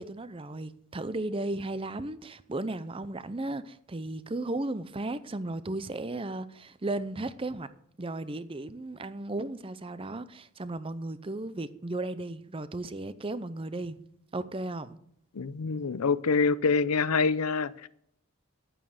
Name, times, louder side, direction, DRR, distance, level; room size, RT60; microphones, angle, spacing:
voice 1, 0.0-7.7 8.0-14.0 14.3-15.0, right 2 dB, 25° right, 0.6 m, -35 dB
voice 2, 15.4-17.9, left 4 dB, 80° left, 0.6 m, -26 dB
11.0 x 9.0 x 6.4 m
head